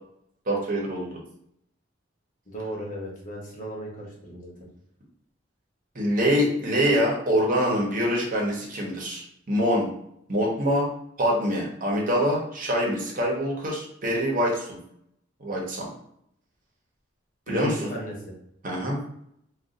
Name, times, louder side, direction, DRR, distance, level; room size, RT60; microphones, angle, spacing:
voice 1, 0.5-1.2 5.9-9.2 9.5-9.9 10.3-10.9 11.2-14.8 15.4-15.9 17.5-17.9 18.6-19.0, equal, 45° right, -2 dB, 0.9 m, -25 dB
voice 2, 2.5-4.5 17.5-18.4, equal, 45° left, -3 dB, 1.0 m, -35 dB
2.6 x 2.3 x 3.7 m, 0.73 s
head